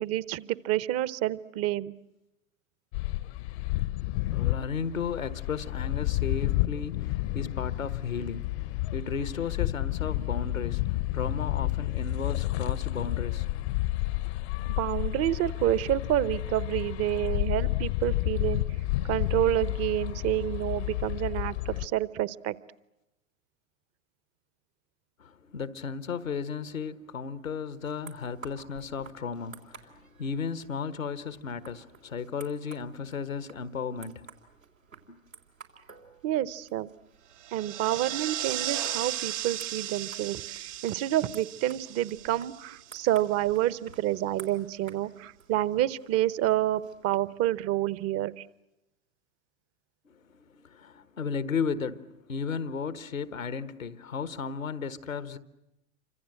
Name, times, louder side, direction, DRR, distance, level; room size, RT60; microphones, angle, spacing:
voice 1, 0.0-1.9 14.7-18.6 19.1-22.6 36.2-36.9 37.5-48.5, right 14 dB, 40° right, 1.0 m, -28 dB
sound 1, 2.9-21.9, left 18 dB, 55° left, 1.0 m, -30 dB
voice 2, 4.3-13.6 25.2-34.3 35.1-35.2 50.0-55.4, left 5 dB, 80° left, 1.4 m, -35 dB
sound 2, 27.8-47.4, right 5 dB, 90° right, 3.5 m, -53 dB
sound 3, 37.4-43.2, right 12 dB, 65° right, 1.2 m, -36 dB
28.5 x 25.5 x 7.8 m
figure-of-eight pair, 85°, 39 cm